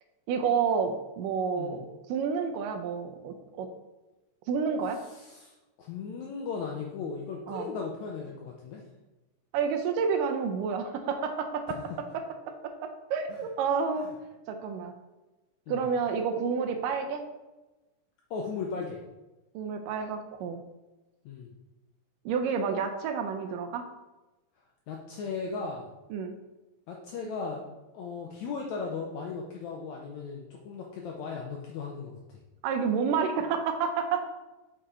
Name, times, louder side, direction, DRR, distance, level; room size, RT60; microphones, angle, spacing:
voice 1, 0.3-3.7 4.5-5.0 7.5-7.7 9.5-11.8 12.1-14.1 14.5-14.9 15.7-17.2 19.5-20.6 22.3-23.9 26.1-26.3 32.6-34.2, right 6 dB, 80° right, 6 dB, 2.2 m, -30 dB
voice 2, 5.1-8.8 13.3-13.4 15.7-15.9 18.3-19.0 21.3-21.5 24.9-25.9 26.9-27.7 27.9-32.2, left 5 dB, 80° left, 0 dB, 1.7 m, -37 dB
6.8 x 5.1 x 4.3 m, 1.1 s
omnidirectional pair, 4.0 m